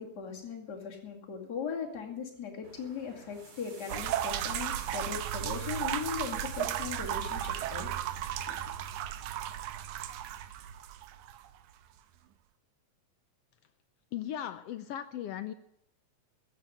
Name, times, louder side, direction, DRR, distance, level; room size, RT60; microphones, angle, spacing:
voice 1, 0.0-7.9, left 6 dB, 35° left, -1 dB, 2.8 m, -39 dB
sound 1, 2.6-8.5, right 4 dB, 50° right, 3.0 m, -50 dB
sound 2, 3.9-11.5, right 11 dB, 85° right, 2.3 m, -35 dB
voice 2, 14.1-15.5, left 11 dB, 75° left, 11 dB, 1.5 m, -37 dB
15.0 x 7.3 x 9.9 m, 0.75 s
omnidirectional pair, 3.3 m